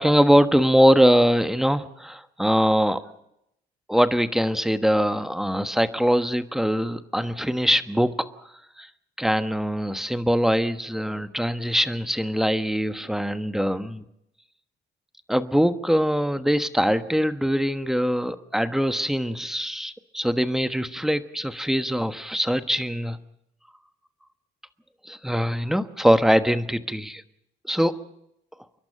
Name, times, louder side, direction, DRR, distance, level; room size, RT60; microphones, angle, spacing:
voice 1, 0.0-3.0 3.9-8.1 8.8-8.9 9.2-14.0 15.3-23.2 25.0-27.2 27.7-27.9, equal, ahead, 11 dB, 1.3 m, -22 dB
29.5 x 12.0 x 8.8 m, 0.79 s
cardioid pair, 90°, 20 cm